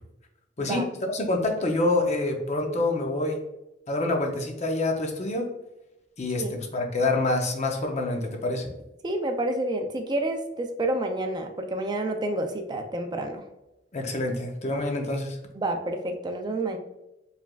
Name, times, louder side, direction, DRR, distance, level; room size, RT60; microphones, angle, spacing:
voice 1, 0.6-3.4 3.9-5.5 6.2-8.7 13.9-15.4, left 2 dB, 40° left, 3 dB, 0.6 m, -27 dB
voice 2, 9.0-13.4 15.5-16.8, right 1 dB, 25° right, 5 dB, 0.4 m, -29 dB
4.7 x 3.4 x 2.3 m, 0.94 s
head